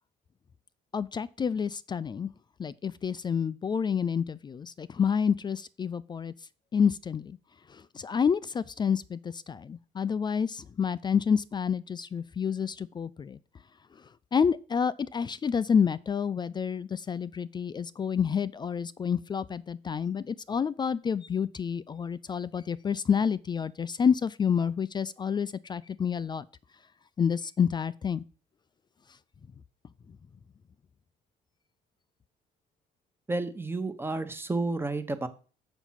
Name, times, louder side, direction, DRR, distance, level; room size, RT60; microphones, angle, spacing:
voice 1, 0.9-2.3 2.6-6.3 6.7-7.4 7.7-13.4 14.3-26.5 27.2-28.2, left 7 dB, 25° left, 0.4 m, -29 dB
voice 2, 33.3-35.3, right 2 dB, 15° right, 1.0 m, -31 dB
7.1 x 6.0 x 5.7 m
cardioid pair, 110°, 17 cm